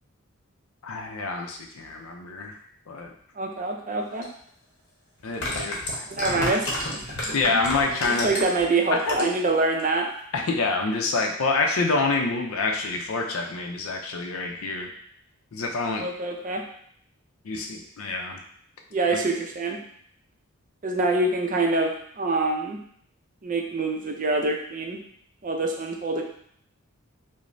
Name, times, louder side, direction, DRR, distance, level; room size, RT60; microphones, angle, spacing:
voice 1, 0.8-2.6 2.9-3.1 5.2-6.3 7.3-8.3 8.9-9.3 10.3-14.9 15.5-16.1 17.4-18.4 19.1-19.3, left 3 dB, 75° left, 2 dB, 0.5 m, -27 dB
voice 2, 3.4-4.2 6.1-7.6 8.0-10.1 16.0-16.6 18.9-19.8 20.8-22.8 23.4-25.0 25.4-26.2, right 2 dB, 40° right, 2 dB, 0.5 m, -26 dB
sound 1, 4.2-4.3 5.2-8.6 9.0-9.5 9.8-9.9, left 1 dB, 55° left, 0.9 m, -30 dB
4.9 x 2.0 x 2.6 m, 0.64 s
head